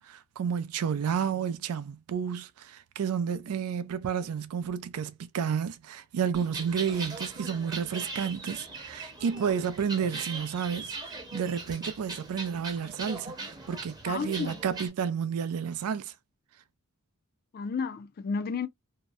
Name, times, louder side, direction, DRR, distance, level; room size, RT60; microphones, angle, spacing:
voice 1, 0.0-16.1, right 7 dB, 75° right, 0.4 m, -31 dB
sound 1, 6.3-14.9, right 3 dB, 20° right, 0.7 m, -40 dB
voice 2, 14.1-14.6 17.5-18.7, left 5 dB, 40° left, 0.3 m, -32 dB
2.7 x 2.0 x 2.3 m
head